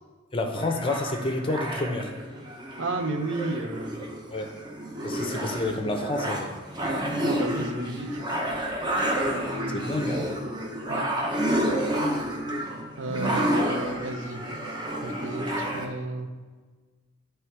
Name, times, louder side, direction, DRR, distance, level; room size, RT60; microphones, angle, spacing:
voice 1, 0.3-2.1 4.3-4.5 5.0-6.6 9.7-10.3, left 2 dB, 25° left, 4 dB, 0.6 m, -29 dB
sound 1, 0.6-15.9, equal, 20° right, 0.7 m, -30 dB
voice 2, 2.8-4.0 7.2-8.2 10.9-11.1 13.0-14.4 15.0-16.3, right 2 dB, 60° right, 7 dB, 0.6 m, -32 dB
9.5 x 3.3 x 4.6 m, 1.4 s
head